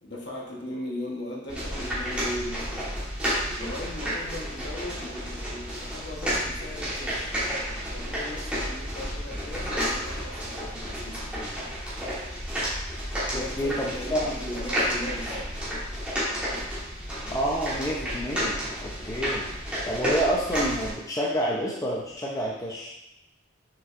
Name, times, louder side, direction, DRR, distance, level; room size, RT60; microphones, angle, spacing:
voice 1, 0.0-2.9 3.6-7.4 7.9-11.7 13.3-15.5, left 1 dB, 55° left, -1 dB, 1.2 m, -38 dB
sound 1, 1.5-20.9, equal, 5° right, 1.6 m, -31 dB
voice 2, 13.3-14.3 17.3-19.5 19.9-22.9, equal, 15° left, -4 dB, 0.6 m, -28 dB
6.2 x 6.1 x 2.5 m, 0.88 s
head